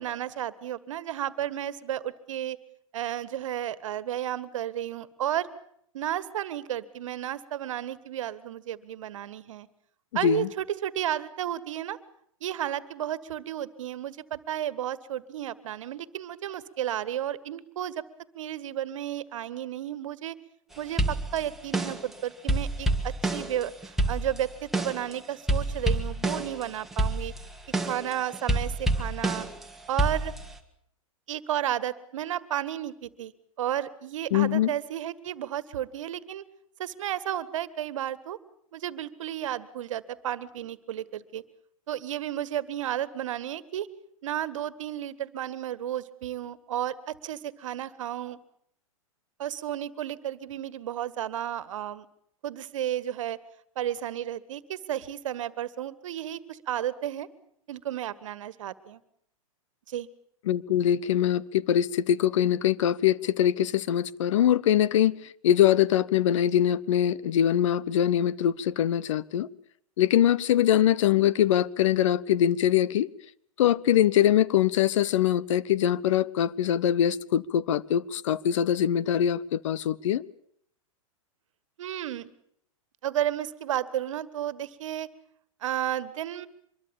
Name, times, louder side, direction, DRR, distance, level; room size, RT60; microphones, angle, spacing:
voice 1, 0.0-2.6 2.9-5.5 5.9-9.7 10.1-12.0 12.4-18.0 18.3-20.4 20.8-23.7 24.1-27.3 27.8-29.5 29.9-30.3 31.3-33.3 33.6-36.4 36.8-38.4 38.7-41.4 41.9-43.9 44.2-48.4 49.4-52.1 52.4-53.4 53.8-57.3 57.7-59.0 59.9-60.1 81.8-82.3 83.0-85.1 85.6-86.5, right 11 dB, 65° right, 1.7 m, -32 dB
sound 1, 21.0-22.1 22.5-25.1 25.5-26.6 26.9-29.7 30.0-30.6, right 1 dB, ahead, 2.5 m, -28 dB
voice 2, 34.3-34.7 60.5-65.2 65.4-69.5 70.0-73.1 73.6-80.2, left 10 dB, 60° left, 1.1 m, -23 dB
25.0 x 22.0 x 7.2 m
hypercardioid pair, 110°, 18 cm